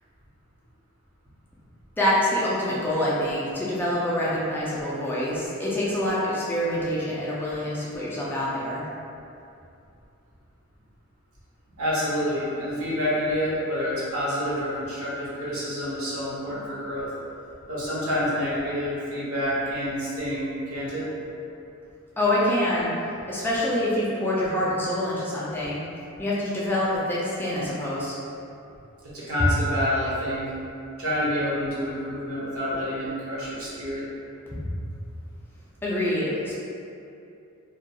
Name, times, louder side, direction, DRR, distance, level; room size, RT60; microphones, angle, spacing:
voice 1, 2.0-8.8 22.2-22.9 23.3-25.8 26.2-28.1 35.8-36.5, left 1 dB, 10° left, -8 dB, 0.3 m, -26 dB
voice 2, 11.8-17.1 17.7-21.1 29.1-30.5 31.0-34.0, equal, 75° right, -8 dB, 0.8 m, -28 dB
2.2 x 2.2 x 2.7 m, 2.6 s
head